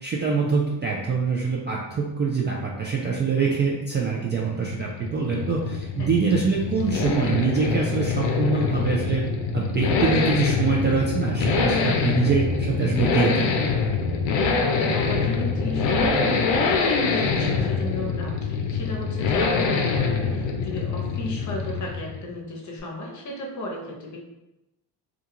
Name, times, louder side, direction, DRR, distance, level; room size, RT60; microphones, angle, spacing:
voice 1, 0.0-9.2 9.5-13.5, right 5 dB, 25° right, -3 dB, 0.3 m, -24 dB
sound 1, 4.3-22.3, left 4 dB, 75° left, 0.6 m, -25 dB
voice 2, 14.9-24.2, left 1 dB, 40° left, -1 dB, 0.8 m, -34 dB
2.4 x 2.3 x 2.8 m, 0.96 s
supercardioid pair, 75°, 46 cm